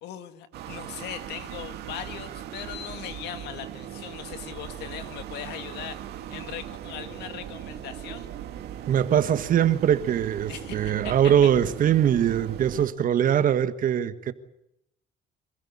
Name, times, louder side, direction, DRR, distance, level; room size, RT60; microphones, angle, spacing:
voice 1, 0.0-8.3 10.5-11.5, left 10 dB, 80° left, 2.1 m, -39 dB
sound 1, 0.5-12.9, right 10 dB, 75° right, 2.1 m, -39 dB
voice 2, 8.9-14.3, right 9 dB, 55° right, 1.5 m, -22 dB
26.0 x 15.5 x 8.7 m
cardioid pair, 110°, 17 cm